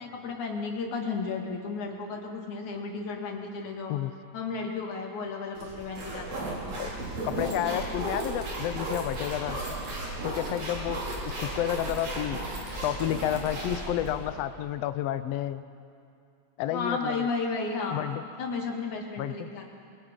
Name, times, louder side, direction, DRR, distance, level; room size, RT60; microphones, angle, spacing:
voice 1, 0.0-4.0 4.3-6.8 16.7-18.0 18.4-19.9, left 4 dB, 65° left, 1 dB, 3.6 m, -33 dB
sound 1, 5.6-14.3, right 1 dB, 55° right, 5.8 m, -34 dB
voice 2, 7.2-9.6 10.2-11.0 11.4-12.4 12.8-15.6 16.6-17.3 17.9-18.2 19.2-19.5, left 12 dB, 85° left, 12 dB, 1.4 m, -30 dB
27.5 x 22.5 x 5.4 m, 2.5 s
omnidirectional pair, 3.8 m